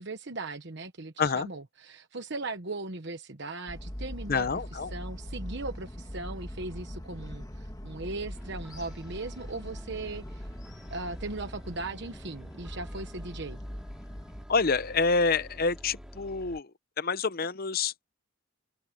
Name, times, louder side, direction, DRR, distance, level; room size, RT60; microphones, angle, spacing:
voice 1, 0.0-10.5 10.9-13.6, right 3 dB, 55° right, 1.1 m, -38 dB
sound 1, 3.7-14.4, equal, 20° left, 1.5 m, -42 dB
voice 2, 4.3-4.9 14.5-16.7 17.0-17.9, left 4 dB, 45° left, 0.7 m, -27 dB
sound 2, 8.3-16.6, equal, 5° right, 2.8 m, -47 dB
open air
head